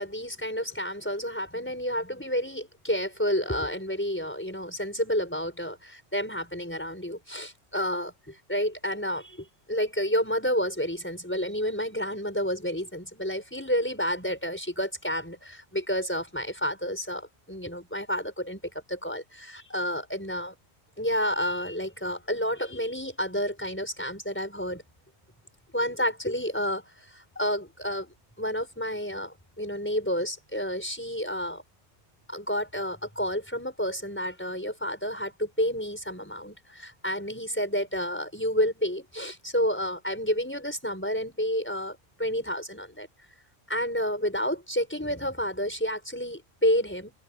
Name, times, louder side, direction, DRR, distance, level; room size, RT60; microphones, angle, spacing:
voice 1, 0.0-20.5 21.0-24.8 25.7-31.6 32.3-43.1 43.7-47.1, equal, 10° left, 5.5 m, -30 dB
omnidirectional pair, 1.3 m